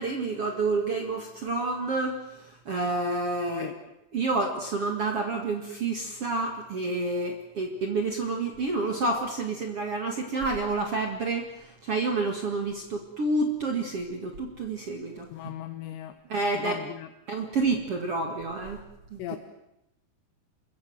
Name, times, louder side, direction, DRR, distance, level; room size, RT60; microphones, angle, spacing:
voice 1, 0.0-3.7 4.1-15.3 16.3-16.8 17.3-18.8 19.1-19.2, right 3 dB, 50° right, 3 dB, 1.8 m, -29 dB
voice 2, 15.3-16.1 16.5-17.1 19.2-19.4, left 12 dB, 75° left, 7 dB, 3.2 m, -37 dB
26.0 x 22.0 x 7.8 m, 0.88 s
omnidirectional pair, 5.2 m